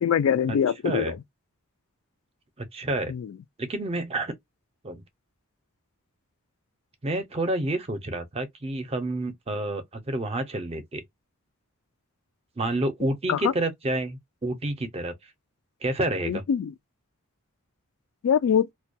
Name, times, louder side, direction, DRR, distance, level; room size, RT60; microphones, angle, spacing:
voice 1, 0.0-1.2 3.1-3.3 13.3-13.5 16.2-16.7 18.2-18.7, left 8 dB, 65° left, 0.3 m, -23 dB
voice 2, 0.8-1.1 2.6-3.1 3.6-4.3 4.8-5.0 7.0-11.0 12.6-15.1 15.8-16.4, right 1 dB, 30° right, 0.5 m, -29 dB
2.2 x 2.2 x 2.5 m
head